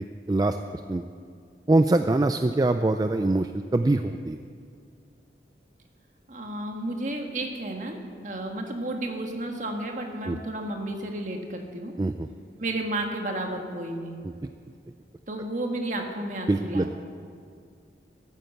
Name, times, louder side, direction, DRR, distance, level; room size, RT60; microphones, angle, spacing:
voice 1, 0.3-1.0 1.7-4.4 10.3-10.4 12.0-12.3 14.2-14.5 16.5-17.0, right 2 dB, 20° right, 8 dB, 0.3 m, -24 dB
voice 2, 6.3-11.9 12.6-14.2 15.3-17.0, right 1 dB, 45° right, 2 dB, 1.6 m, -32 dB
14.0 x 9.3 x 7.9 m, 2.2 s
head